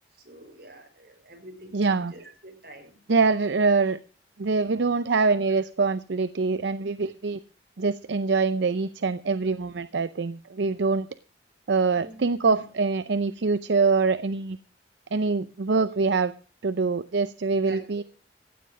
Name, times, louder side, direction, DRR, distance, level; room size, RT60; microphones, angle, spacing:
voice 1, 0.1-3.0 11.9-12.6 15.8-16.1 17.6-18.0, right 1 dB, 60° right, 5.8 m, -46 dB
voice 2, 1.7-2.1 3.1-4.0 4.4-7.4 7.8-11.1 11.7-14.6 15.1-16.3 16.6-18.0, right 4 dB, 80° right, 0.6 m, -24 dB
16.0 x 10.0 x 5.1 m
head